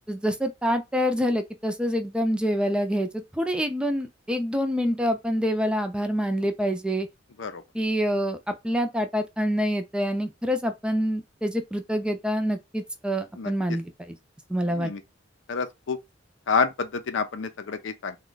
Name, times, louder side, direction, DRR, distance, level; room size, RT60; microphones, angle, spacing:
voice 1, 0.1-7.1 7.7-14.2 14.5-14.9, equal, 5° right, 0.4 m, -26 dB
voice 2, 15.5-16.0 16.5-18.2, left 5 dB, 90° left, 0.5 m, -28 dB
3.0 x 2.3 x 3.8 m
head